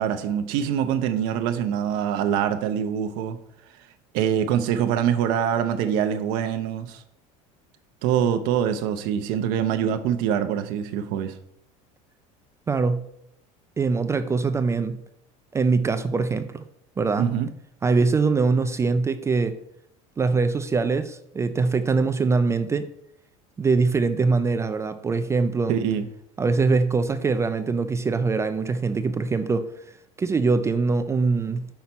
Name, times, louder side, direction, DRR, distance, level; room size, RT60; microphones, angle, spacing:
voice 1, 0.0-3.4 4.1-7.0 8.0-11.4 17.2-17.5 25.7-26.1, right 9 dB, 65° right, 0.7 m, -24 dB
voice 2, 12.7-13.1 13.8-15.0 15.5-16.6 17.0-17.3 17.8-19.5 20.2-22.9 23.6-25.7 26.4-29.7 30.2-31.7, right 4 dB, 15° right, 0.4 m, -23 dB
5.7 x 4.2 x 5.9 m
supercardioid pair, 120°, 16 cm